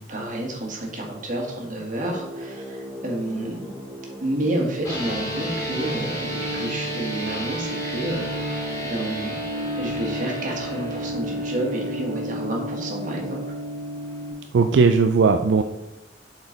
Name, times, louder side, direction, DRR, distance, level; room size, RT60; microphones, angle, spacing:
voice 1, 0.0-3.7 4.2-9.4 9.8-13.4, right 1 dB, 45° right, -1 dB, 1.7 m, -30 dB
sound 1, 2.0-7.7, right 1 dB, 15° right, 1.3 m, -39 dB
sound 2, 4.8-14.3, equal, 20° left, 2.1 m, -30 dB
voice 2, 14.5-15.6, right 4 dB, 80° right, 6 dB, 0.4 m, -17 dB
7.8 x 4.4 x 3.9 m, 0.91 s
head